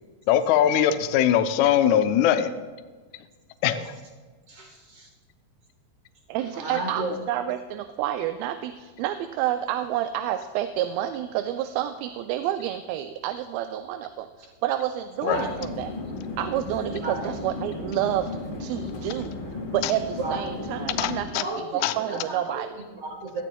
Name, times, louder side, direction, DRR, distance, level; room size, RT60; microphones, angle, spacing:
voice 1, 0.3-2.5 3.6-4.0 15.2-15.4 19.8-19.9 21.0-21.4 21.8-21.9, left 10 dB, 80° left, 9 dB, 1.7 m, -21 dB
voice 2, 4.5-5.1 6.4-7.2 15.2-15.6 16.9-17.3 18.8-19.0 20.1-20.6 21.3-23.4, right 2 dB, 50° right, 1 dB, 1.7 m, -34 dB
voice 3, 6.3-15.9 16.4-18.3 18.6-19.3 19.7-21.5 21.7-22.7, right 12 dB, 85° right, 8 dB, 2.4 m, -29 dB
sound 1, 15.3-21.2, left 2 dB, 45° left, 2.1 m, -35 dB
19.5 x 13.5 x 2.3 m, 1.4 s
omnidirectional pair, 4.2 m